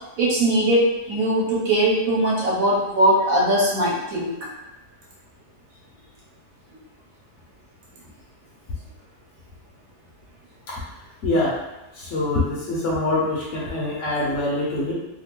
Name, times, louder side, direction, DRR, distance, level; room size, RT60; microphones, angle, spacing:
voice 1, 0.2-4.3, right 1 dB, 65° right, -6 dB, 1.3 m, -20 dB
voice 2, 11.2-11.5 11.9-14.9, left 2 dB, 65° left, -5 dB, 0.9 m, -24 dB
3.0 x 2.1 x 3.0 m, 0.97 s
omnidirectional pair, 1.6 m